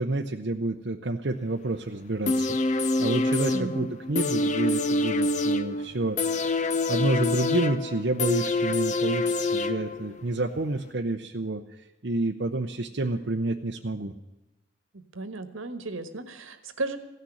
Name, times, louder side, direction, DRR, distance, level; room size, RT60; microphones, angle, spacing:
voice 1, 0.0-11.6 12.0-14.1, right 2 dB, 55° right, 3 dB, 0.7 m, -29 dB
sound 1, 2.3-10.2 10.6-10.7, left 2 dB, 35° left, 0.6 m, -26 dB
voice 2, 3.5-3.9 15.1-17.0, right 2 dB, 80° right, 9 dB, 1.4 m, -34 dB
15.5 x 6.7 x 9.7 m, 1.0 s
head